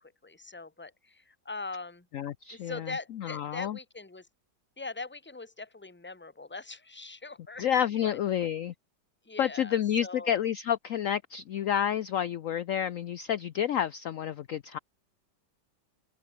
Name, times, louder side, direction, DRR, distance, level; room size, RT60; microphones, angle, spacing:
voice 1, 0.0-2.1 2.5-4.3 4.8-7.6 8.0-8.2 9.2-10.3, left 3 dB, 5° left, 1.4 m, -41 dB
voice 2, 2.1-2.9 3.2-3.8 7.6-8.7 9.4-14.8, left 9 dB, 60° left, 0.9 m, -29 dB
omnidirectional pair, 1.9 m